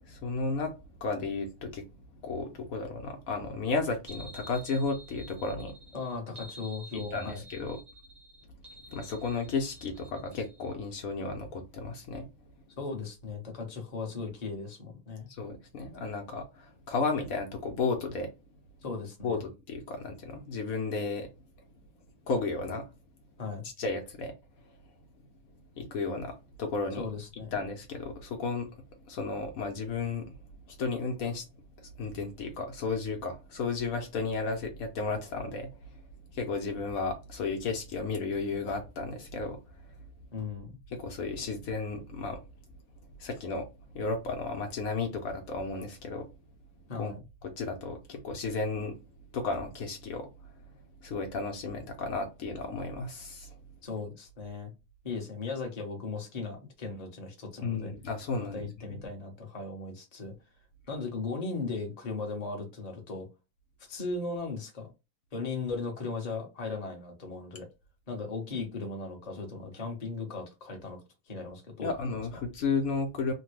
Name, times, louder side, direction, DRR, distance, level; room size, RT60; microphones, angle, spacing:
voice 1, 0.0-1.9 2.2-5.7 6.9-7.8 8.9-12.3 15.3-18.3 19.2-21.3 22.3-22.9 23.8-24.3 24.6-24.7 25.8-27.1 27.5-28.7 29.1-30.4 30.7-31.4 31.8-35.9 36.3-39.9 40.9-42.4 43.2-43.7 43.9-46.3 47.0-47.1 47.4-49.0 49.3-50.3 51.0-53.5 57.6-59.0 71.8-73.3, left 4 dB, 70° left, 1.1 m, -33 dB
sound 1, 4.1-10.7, right 1 dB, 40° right, 0.6 m, -50 dB
voice 2, 5.9-7.4 12.8-15.3 18.8-19.4 23.4-23.7 27.0-27.5 40.3-40.8 46.9-47.2 53.8-54.7 55.0-57.9 58.5-60.3 60.9-63.3 63.9-64.9 65.3-67.7 68.1-71.0 71.3-71.9, left 4 dB, 30° left, 1.0 m, -37 dB
3.2 x 2.2 x 3.1 m
omnidirectional pair, 1.6 m